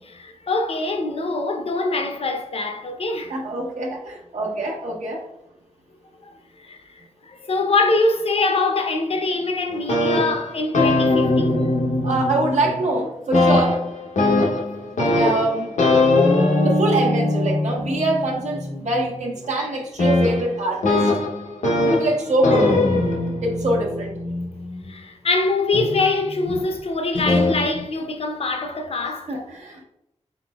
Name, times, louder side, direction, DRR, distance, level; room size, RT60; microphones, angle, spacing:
voice 1, 0.0-3.3 6.2-11.6 17.8-17.9 24.9-29.3, left 3 dB, 50° left, 0.6 m, -24 dB
voice 2, 3.3-5.2 12.0-13.8 14.9-15.7 16.6-21.1 21.8-22.7 23.4-24.1 29.3-29.8, right 2 dB, 70° right, 1.1 m, -24 dB
sound 1, 9.7-13.0 13.3-24.9 25.7-26.6 27.3-27.6, left 2 dB, 85° left, 0.8 m, -21 dB
4.2 x 4.1 x 2.3 m
wide cardioid pair, 130°, 12 cm